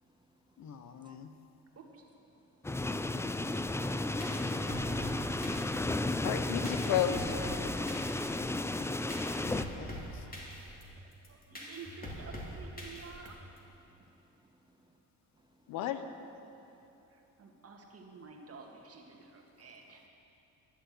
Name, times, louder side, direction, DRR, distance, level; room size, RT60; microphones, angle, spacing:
voice 1, 0.6-1.4 9.4-10.7, left 6 dB, 60° left, 0.9 m, -49 dB
voice 2, 1.7-2.1 3.7-5.0 10.7-10.8 11.3-13.7 14.0-14.1 17.1-20.1, right 4 dB, 45° right, 1.8 m, -52 dB
sound 1, 2.6-9.7, left 2 dB, 10° left, 0.4 m, -33 dB
sound 2, 3.9-13.6, equal, 25° left, 2.5 m, -44 dB
voice 3, 6.2-7.5 15.7-16.0, left 10 dB, 90° left, 0.7 m, -32 dB
voice 4, 13.8-15.0 15.4-15.5 16.5-16.8, right 1 dB, 15° right, 1.1 m, -68 dB
12.0 x 7.0 x 7.8 m
cardioid pair, 70°, 32 cm